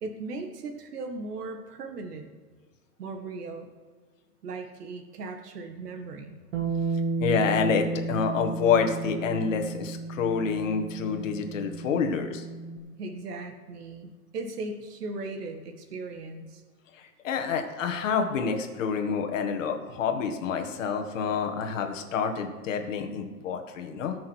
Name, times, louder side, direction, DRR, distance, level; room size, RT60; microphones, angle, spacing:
voice 1, 0.0-2.3 3.0-3.7 4.4-6.4 13.0-16.6, right 3 dB, 85° right, 5 dB, 1.8 m, -37 dB
Bass guitar, 6.5-12.8, right 3 dB, 50° right, 2.5 m, -33 dB
voice 2, 7.2-12.5 17.2-24.2, left 6 dB, 55° left, 5 dB, 1.8 m, -28 dB
19.0 x 6.5 x 4.5 m, 1.4 s
supercardioid pair, 170°, 46 cm